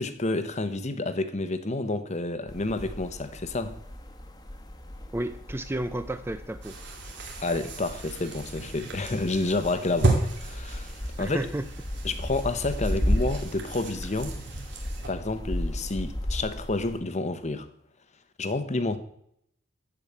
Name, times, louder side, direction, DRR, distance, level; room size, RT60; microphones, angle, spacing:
voice 1, 0.0-3.8 7.4-10.9 11.2-11.5 12.0-14.3 15.1-17.7 18.4-19.0, left 2 dB, 35° left, 0.9 m, -29 dB
sound 1, 2.5-17.0, equal, 20° left, 1.3 m, -35 dB
voice 2, 5.1-6.8 11.2-11.7, right 1 dB, 10° right, 0.4 m, -32 dB
sound 2, 6.6-15.1, right 2 dB, 60° right, 2.6 m, -34 dB
14.0 x 5.0 x 8.6 m
head